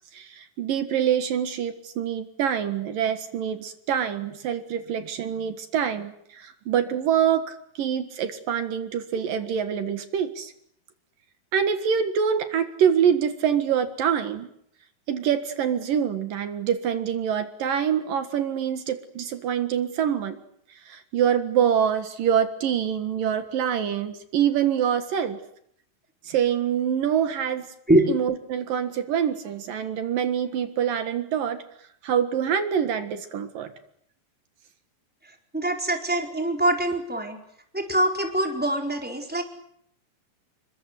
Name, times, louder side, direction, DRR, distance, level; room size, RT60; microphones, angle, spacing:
voice 1, 0.1-10.5 11.5-14.5 15.1-20.4 20.9-25.4 26.2-27.7 28.1-31.6 32.0-33.7, right 8 dB, 75° right, 9 dB, 3.4 m, -25 dB
voice 2, 35.5-37.4 37.7-39.4, right 1 dB, 5° right, 3 dB, 4.3 m, -23 dB
29.5 x 24.0 x 8.3 m, 0.70 s
omnidirectional pair, 4.1 m